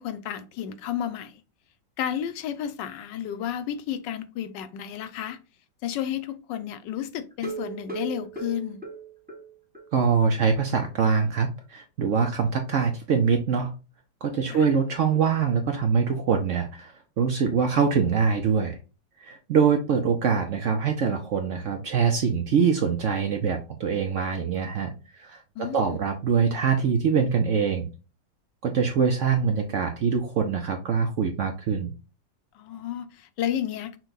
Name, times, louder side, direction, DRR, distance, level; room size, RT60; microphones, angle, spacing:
voice 1, 0.0-1.4 2.0-5.4 5.8-8.8 14.5-14.7 25.6-26.0 32.5-34.0, left 10 dB, 75° left, 1.2 m, -32 dB
sound 1, 7.3-9.9 10.2-10.3 10.7-10.8 11.1-11.2, right 5 dB, 10° right, 0.4 m, -37 dB
voice 2, 9.9-13.7 14.2-18.8 19.2-27.9 28.6-31.9, right 6 dB, 80° right, 0.6 m, -24 dB
6.2 x 2.2 x 3.9 m
omnidirectional pair, 2.0 m